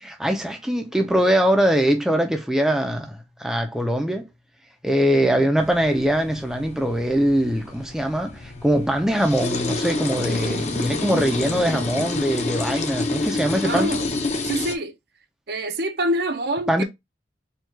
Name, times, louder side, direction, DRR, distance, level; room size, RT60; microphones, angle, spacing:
voice 1, 0.0-4.2 4.8-14.0 16.7-16.8, equal, 5° right, 0.5 m, -22 dB
voice 2, 5.1-5.5 13.6-14.1 14.4-14.9 15.5-16.8, right 1 dB, 55° right, 0.6 m, -26 dB
sound 1, 5.6-14.8, left 2 dB, 35° left, 0.6 m, -28 dB
4.5 x 2.3 x 4.4 m
head